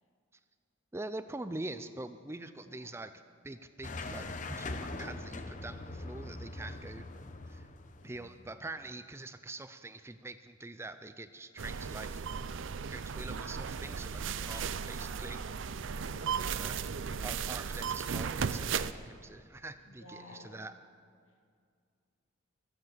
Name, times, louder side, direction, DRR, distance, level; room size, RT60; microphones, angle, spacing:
voice 1, 0.9-3.1 3.4-7.1 7.5-7.7 8.0-12.2 12.9-15.4 16.2-16.8 17.2-20.7, right 2 dB, 10° right, 11 dB, 0.4 m, -44 dB
voice 2, 2.6-3.1 8.0-8.4 15.8-16.9 19.8-20.7, left 1 dB, 80° left, 3 dB, 2.2 m, -55 dB
sound 1, 3.8-8.5, left 2 dB, 40° left, 0.8 m, -42 dB
sound 2, 11.6-18.9, right 6 dB, 65° right, 0.5 m, -36 dB
23.0 x 8.0 x 7.7 m, 2.2 s
head